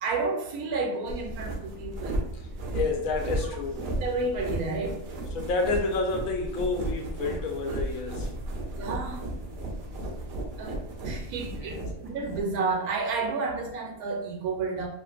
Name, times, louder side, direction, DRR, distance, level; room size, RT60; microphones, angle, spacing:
voice 1, 0.0-2.2 3.9-5.0 8.7-9.2 10.6-10.8 11.0-14.9, right 3 dB, 85° right, 2 dB, 1.1 m, -31 dB
sound 1, 1.1-12.4, right 1 dB, 65° right, 0.6 m, -34 dB
voice 2, 2.3-3.9 5.3-8.3 11.5-11.8, left 3 dB, 75° left, 2 dB, 1.0 m, -30 dB
2.8 x 2.5 x 2.4 m, 0.80 s
omnidirectional pair, 1.5 m